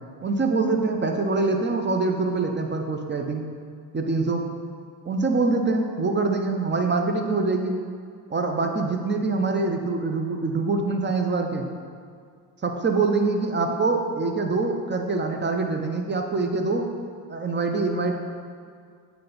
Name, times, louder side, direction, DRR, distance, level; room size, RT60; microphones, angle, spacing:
voice 1, 0.2-3.5 3.9-4.4 5.0-7.8 8.3-11.6 12.6-16.8 17.3-18.2, right 3 dB, 20° right, 4 dB, 0.7 m, -24 dB
8.5 x 3.4 x 4.0 m, 2.1 s
supercardioid pair, 65°, 49 cm